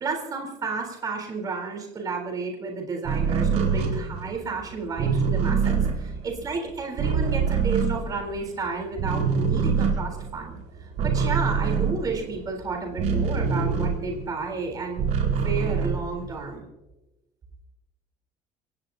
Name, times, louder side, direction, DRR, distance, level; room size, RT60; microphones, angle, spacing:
voice 1, 0.0-10.5 10.8-16.6, right 4 dB, 25° right, 1 dB, 3.9 m, -32 dB
sound 1, 3.0-8.6 8.9-14.4 14.7-16.6, right 6 dB, 55° right, 4.6 m, -25 dB
29.0 x 16.0 x 2.8 m, 1.1 s
cardioid pair, 175°, 14 cm